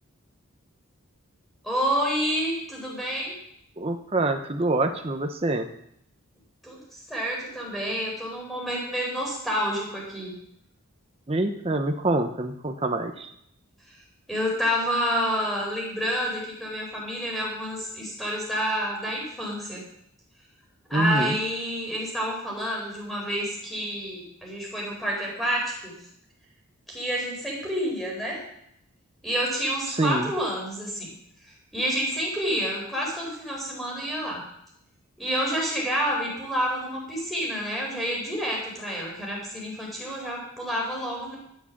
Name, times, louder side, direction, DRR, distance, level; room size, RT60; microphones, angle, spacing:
voice 1, 1.6-3.3 6.6-10.3 14.3-19.8 20.9-26.0 26.9-28.4 29.2-31.1 31.7-34.4 35.2-41.4, equal, ahead, -3 dB, 4.2 m, -29 dB
voice 2, 3.8-5.7 11.3-13.3 20.9-21.4 29.9-30.3, right 2 dB, 25° right, 5 dB, 0.7 m, -26 dB
12.0 x 7.5 x 7.1 m, 0.75 s
head